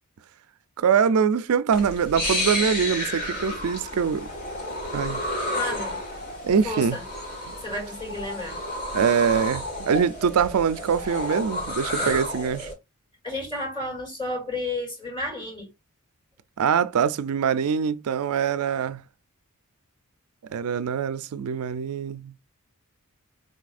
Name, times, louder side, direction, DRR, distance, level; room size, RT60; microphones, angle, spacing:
voice 1, 0.8-4.3 4.9-5.2 6.4-7.0 7.5-7.6 8.9-12.7 16.6-19.0 20.5-22.3, right 7 dB, 80° right, 0.4 m, -23 dB
sound 1, 1.7-12.7, left 1 dB, 45° left, 2.7 m, -31 dB
voice 2, 5.5-6.0 6.6-7.0 7.6-8.6 13.2-15.7, left 2 dB, 25° left, 3.1 m, -31 dB
5.3 x 4.1 x 2.4 m
head